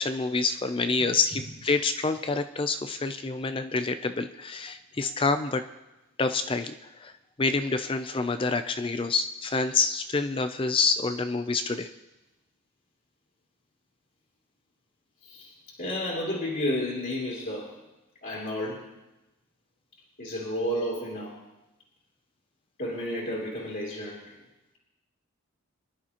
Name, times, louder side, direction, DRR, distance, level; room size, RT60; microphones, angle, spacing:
voice 1, 0.0-5.6 6.2-7.1 7.4-11.9, left 4 dB, 25° left, 9 dB, 0.4 m, -27 dB
voice 2, 15.2-17.8 18.2-18.9 20.2-21.3 22.8-24.4, left 1 dB, 40° left, -4 dB, 2.7 m, -32 dB
22.5 x 11.5 x 2.9 m, 1.0 s
head